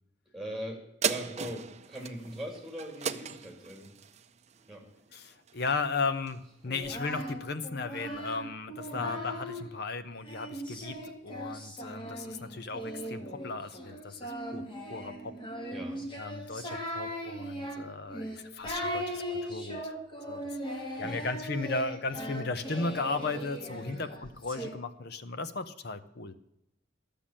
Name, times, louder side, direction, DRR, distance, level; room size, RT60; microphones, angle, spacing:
voice 1, 0.3-4.0 4.7-4.9 8.8-9.2 11.3-11.6 15.7-16.1 20.8-21.3 23.7-24.0, equal, ahead, 1 dB, 2.8 m, -41 dB
sound 1, 1.0-5.8 6.3-6.4, right 7 dB, 35° right, 0.5 m, -37 dB
voice 2, 5.1-11.0 11.2-14.6 14.9-15.3 16.2-19.9 20.3-20.6 21.0-26.3, left 3 dB, 60° left, 11 dB, 0.9 m, -36 dB
Singing, 6.7-9.7 10.2-24.7, equal, 25° left, 1.9 m, -39 dB
12.0 x 7.0 x 7.4 m, 0.82 s
head